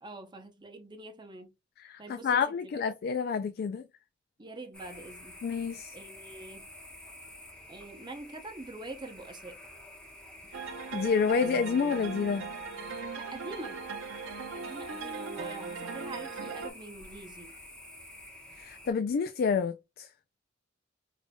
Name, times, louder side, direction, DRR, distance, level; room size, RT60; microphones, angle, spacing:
voice 1, 0.0-1.5 2.0-2.7 4.4-5.3 5.9-6.7 7.7-9.6 13.1-13.8 14.5-17.5, right 2 dB, 25° right, 0.7 m, -44 dB
voice 2, 1.8-3.9 5.4-5.9 10.6-12.4 18.6-20.1, left 6 dB, 50° left, 0.3 m, -29 dB
sound 1, 4.7-18.9, left 1 dB, 5° left, 1.0 m, -50 dB
sound 2, 10.5-16.7, right 4 dB, 85° right, 0.7 m, -39 dB
5.0 x 2.6 x 2.2 m
head